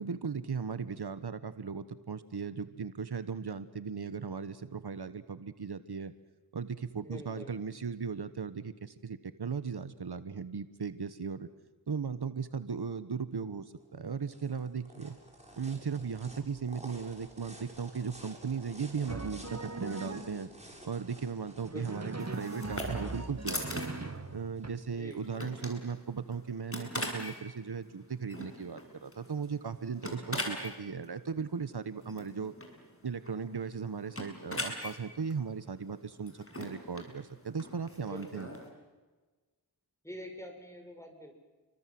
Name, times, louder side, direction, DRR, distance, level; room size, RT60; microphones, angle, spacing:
voice 1, 0.0-6.1 6.5-11.5 11.9-15.2 15.6-20.5 20.8-23.9 24.3-32.5 33.0-38.5, right 6 dB, 70° right, 12 dB, 1.3 m, -37 dB
voice 2, 6.9-7.5 21.7-22.1 24.9-25.2 38.0-38.5 40.0-41.4, equal, 5° left, 4 dB, 7.4 m, -46 dB
sound 1, 13.8-24.7, right 1 dB, 15° right, 7.0 m, -52 dB
Drum, 19.1-20.6 21.6-24.7, right 2 dB, 40° right, 2.3 m, -40 dB
sound 2, 22.2-38.7, left 1 dB, 35° left, 7.1 m, -42 dB
29.5 x 24.0 x 7.7 m, 1.3 s
wide cardioid pair, 45°, 40 cm